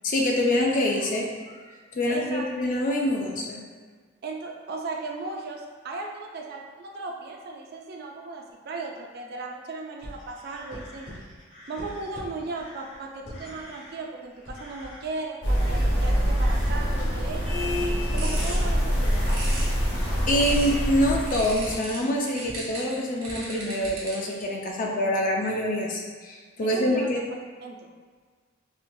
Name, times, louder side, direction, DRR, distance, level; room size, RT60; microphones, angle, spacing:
voice 1, 0.0-1.3 1.9-3.6 20.3-27.2, left 1 dB, 40° left, 0 dB, 0.4 m, -25 dB
voice 2, 2.1-2.5 4.2-11.1 11.7-17.4 18.1-19.3 26.6-27.1 27.6-27.9, right 3 dB, 50° right, 1 dB, 0.3 m, -36 dB
sound 1, 10.0-13.9 14.3-15.3 15.5-22.8 23.0-24.4, equal, 80° left, 1.5 m, -43 dB
sound 2, 15.4-21.7, equal, 60° left, 1.0 m, -25 dB
sound 3, 17.8-20.8 21.3-24.4, right 2 dB, 90° right, 1.0 m, -38 dB
4.3 x 2.2 x 2.6 m, 1.5 s
head